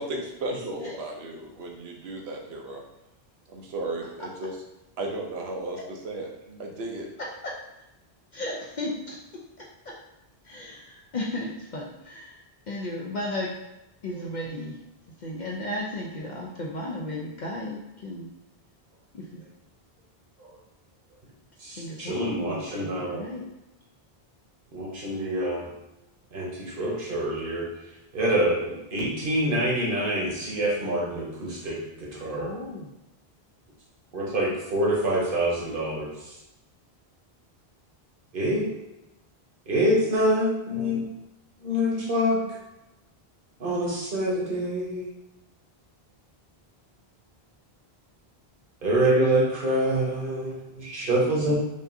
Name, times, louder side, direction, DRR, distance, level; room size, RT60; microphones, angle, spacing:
voice 1, 0.0-2.8 3.5-4.6 5.0-6.3 6.6-7.1, right 2 dB, 75° right, 1 dB, 1.0 m, -34 dB
voice 2, 8.3-9.7 10.4-13.5 14.0-14.8 15.2-18.3 19.1-19.4 21.8-23.5 32.4-32.9, left 1 dB, 55° left, -3 dB, 0.6 m, -35 dB
voice 3, 21.6-23.2 24.7-25.7 26.3-27.6 28.1-32.5 34.1-36.1 38.3-38.6 39.7-41.0 41.6-42.4 43.6-45.1 48.8-51.5, right 1 dB, 60° right, -4 dB, 1.2 m, -26 dB
5.2 x 2.5 x 2.6 m, 0.93 s
omnidirectional pair, 1.1 m